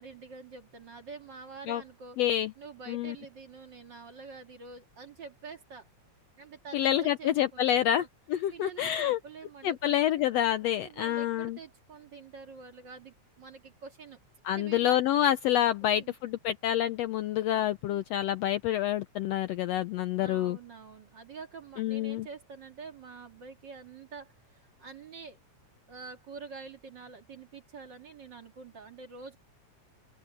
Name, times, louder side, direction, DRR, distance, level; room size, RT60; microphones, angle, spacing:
voice 1, 0.0-2.2 2.6-5.9 6.4-8.1 8.5-10.3 10.6-14.2 14.5-15.1 15.8-16.1 19.7-19.8 20.1-25.4 25.9-29.4, right 5 dB, 40° right, 2.4 m, -47 dB
voice 2, 2.2-2.5 2.9-3.1 6.7-8.0 8.3-9.2 9.6-11.6 14.4-20.6 21.8-22.3, left 11 dB, 75° left, 1.5 m, -27 dB
open air
omnidirectional pair, 3.5 m